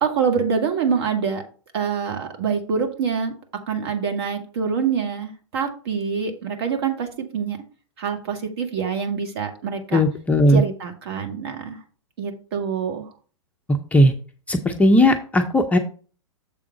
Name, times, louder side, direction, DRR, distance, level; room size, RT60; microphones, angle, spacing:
voice 1, 0.0-1.4 1.7-3.3 3.7-7.6 8.0-10.0 10.5-11.8 12.2-13.1, right 6 dB, 50° right, 5 dB, 1.7 m, -25 dB
voice 2, 9.9-10.6 13.9-14.1 14.5-15.8, left 1 dB, 10° left, 4 dB, 0.5 m, -17 dB
7.2 x 3.6 x 5.8 m, 0.39 s
figure-of-eight pair, 110°, 16 cm